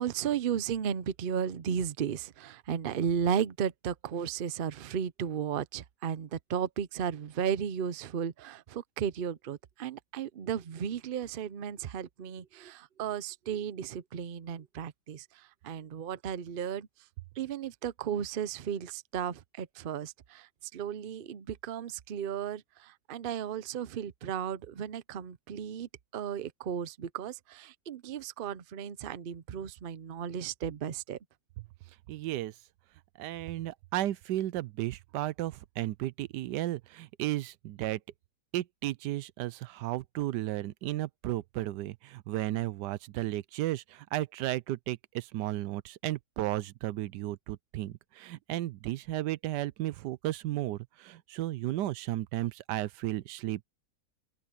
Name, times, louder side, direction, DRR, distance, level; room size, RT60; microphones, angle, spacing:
voice 1, 0.0-16.9 17.4-31.2, right 8 dB, 55° right, 0.6 m, -34 dB
voice 2, 32.1-32.5 33.2-38.0 38.5-53.7, right 15 dB, 85° right, 1.2 m, -34 dB
open air
omnidirectional pair, 1.8 m